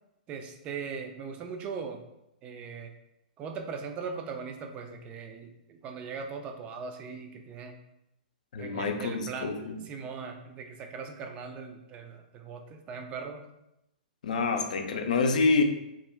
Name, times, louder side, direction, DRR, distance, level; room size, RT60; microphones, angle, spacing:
voice 1, 0.3-2.0 2.4-2.9 3.4-7.8 8.6-9.6 9.9-13.4, right 5 dB, 25° right, 4 dB, 0.3 m, -39 dB
voice 2, 8.5-9.8 14.2-15.6, left 4 dB, 65° left, 5 dB, 0.4 m, -27 dB
2.4 x 2.0 x 3.1 m, 0.86 s
figure-of-eight pair, 115°, 4 cm